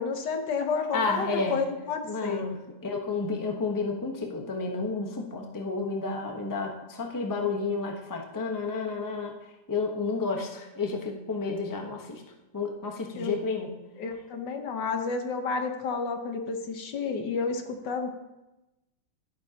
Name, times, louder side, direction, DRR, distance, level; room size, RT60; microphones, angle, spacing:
voice 1, 0.0-2.5 13.1-13.3 14.0-18.1, left 5 dB, 75° left, 5 dB, 1.8 m, -31 dB
voice 2, 0.9-1.6 2.1-9.3 9.7-12.2 12.5-13.7, left 4 dB, 15° left, 1 dB, 0.8 m, -31 dB
12.5 x 12.0 x 2.9 m, 1.0 s
omnidirectional pair, 1.9 m